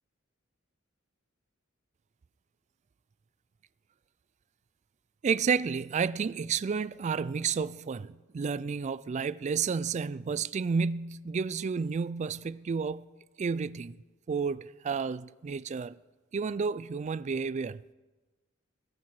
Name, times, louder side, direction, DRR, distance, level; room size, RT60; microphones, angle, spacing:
voice 1, 5.2-13.1 13.4-13.9 14.3-16.0 16.3-17.8, right 5 dB, 35° right, 0.3 m, -31 dB
20.0 x 8.5 x 4.8 m
head